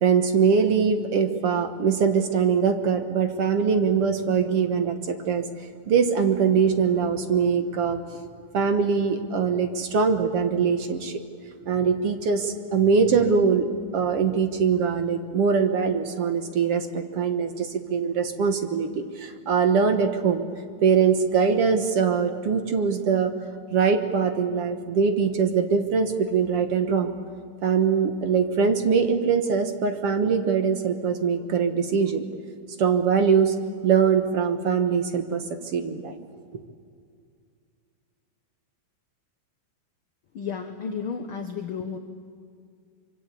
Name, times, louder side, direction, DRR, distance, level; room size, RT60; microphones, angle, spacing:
voice 1, 0.0-5.4 5.9-8.0 8.5-11.2 11.7-13.7 13.9-20.4 20.8-23.3 23.7-27.1 27.6-32.2 32.8-33.6 33.8-35.4 35.7-36.2, right 6 dB, 55° right, 7 dB, 1.9 m, -22 dB
voice 2, 40.3-42.0, left 6 dB, 60° left, 6 dB, 1.4 m, -32 dB
25.0 x 24.0 x 8.4 m, 2.2 s
omnidirectional pair, 3.8 m